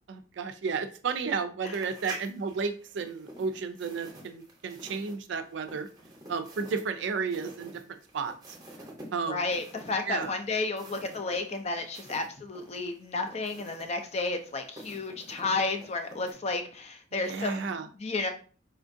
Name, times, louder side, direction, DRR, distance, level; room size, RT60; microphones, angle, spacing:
voice 1, 0.1-5.9 6.3-8.3 9.1-9.4 10.1-10.3 17.1-17.9, right 5 dB, 65° right, 9 dB, 0.4 m, -33 dB
sound 1, 1.6-12.3 12.6-16.3, right 2 dB, 20° right, 0.8 m, -48 dB
voice 2, 9.3-17.7 18.0-18.3, left 3 dB, 35° left, 6 dB, 0.4 m, -32 dB
4.2 x 2.4 x 2.5 m, 0.38 s
head